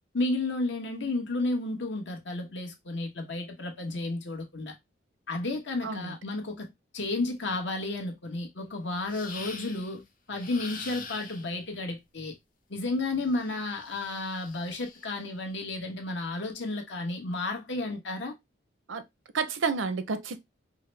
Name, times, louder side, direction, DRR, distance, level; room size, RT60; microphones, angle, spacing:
voice 1, 0.1-4.7 5.3-10.0 10.3-12.3 12.7-18.3, left 2 dB, 70° left, 1.1 m, -32 dB
voice 2, 5.8-6.2 18.9-19.0 19.3-20.4, right 5 dB, 85° right, 0.6 m, -30 dB
sound 1, 9.1-10.0 10.3-11.6 13.3-15.2, left 4 dB, 45° left, 0.6 m, -44 dB
4.8 x 2.1 x 3.2 m
head